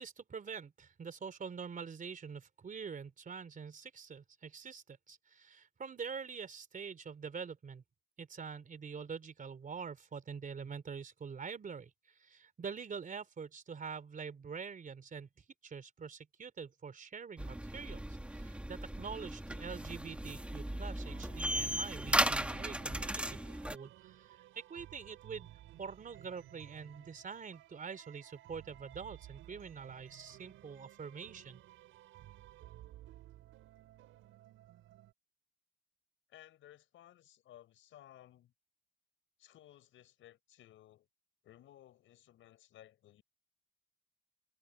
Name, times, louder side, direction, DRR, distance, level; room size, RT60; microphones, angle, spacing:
voice 1, 0.0-7.8 8.2-18.0 18.3-23.4 23.7-25.5 25.8-31.6, right 6 dB, 40° right, 3.4 m, -45 dB
sound 1, 17.4-23.8, right 1 dB, 5° right, 1.5 m, -36 dB
sound 2, 21.0-35.1, right 14 dB, 90° right, 6.3 m, -56 dB
voice 2, 36.3-38.5 39.4-41.1 41.4-43.2, left 13 dB, 80° left, 6.8 m, -59 dB
cardioid pair, 90°, 20 cm